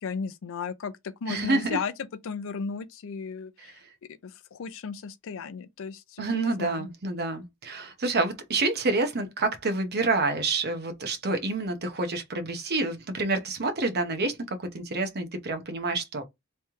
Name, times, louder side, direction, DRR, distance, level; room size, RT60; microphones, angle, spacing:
voice 1, 0.0-1.9 2.2-3.7 4.2-6.9, left 5 dB, 65° left, 0.5 m, -35 dB
voice 2, 1.3-1.8 3.6-3.8 6.2-16.2, right 3 dB, 50° right, 0.8 m, -28 dB
3.3 x 2.9 x 3.5 m
head